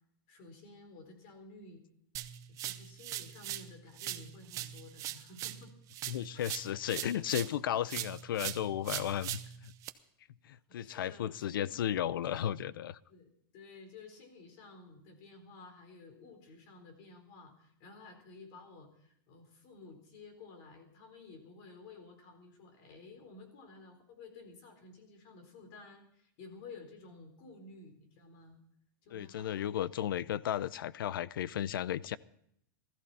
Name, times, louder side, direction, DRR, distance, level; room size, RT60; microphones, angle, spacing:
voice 1, 0.3-1.8 2.5-5.7 6.3-6.4 10.7-11.8 13.1-28.6 29.0-29.6, left 3 dB, 45° left, 3.9 m, -53 dB
sound 1, 2.1-3.7 4.0-7.6 7.9-9.9, right 13 dB, 30° right, 0.8 m, -40 dB
voice 2, 6.1-9.7 10.5-13.0 29.1-32.2, left 10 dB, 90° left, 0.6 m, -34 dB
19.0 x 14.5 x 4.2 m
supercardioid pair, 155°, 11 cm